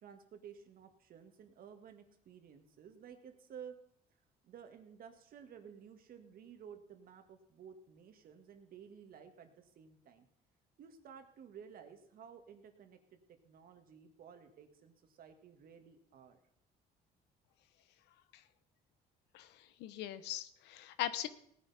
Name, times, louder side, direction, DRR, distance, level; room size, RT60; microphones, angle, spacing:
voice 1, 0.0-3.7 4.4-10.3 10.8-13.2 13.4-16.4, right 7 dB, 60° right, 6 dB, 1.9 m, -54 dB
voice 2, 19.8-21.3, left 13 dB, 90° left, 13 dB, 0.9 m, -39 dB
18.0 x 9.8 x 4.2 m, 0.71 s
cardioid pair, 110°, 17 cm